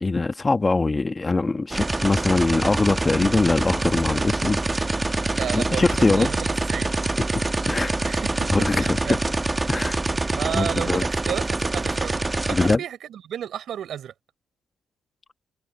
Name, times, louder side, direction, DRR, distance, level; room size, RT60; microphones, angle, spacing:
voice 1, 0.0-4.6 5.5-6.3 7.7-8.0 8.5-9.0 9.7-10.0 10.5-11.0 12.5-12.8, left 3 dB, 25° left, 1.3 m, -22 dB
sound 1, 1.7-12.8, right 2 dB, 20° right, 1.1 m, -25 dB
voice 2, 5.3-6.9 8.0-9.2 9.7-14.1, right 9 dB, 70° right, 3.9 m, -33 dB
cardioid pair, 90°, 0 cm